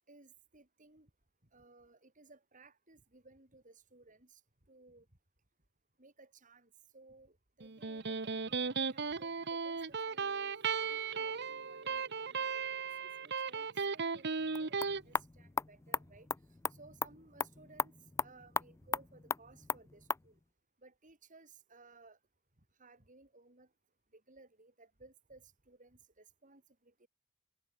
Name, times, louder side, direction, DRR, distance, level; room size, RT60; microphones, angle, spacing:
voice 1, 0.1-1.1 1.5-4.4 4.7-5.1 6.0-10.5 10.8-16.3 16.7-17.9 18.2-20.4 20.8-22.2 22.8-23.7 24.1-27.1, right 3 dB, 40° right, 4.6 m, -60 dB
Electric guitar, 7.6-15.0, right 5 dB, 55° right, 1.2 m, -36 dB
sound 1, 14.4-20.3, left 4 dB, 15° left, 0.3 m, -39 dB
head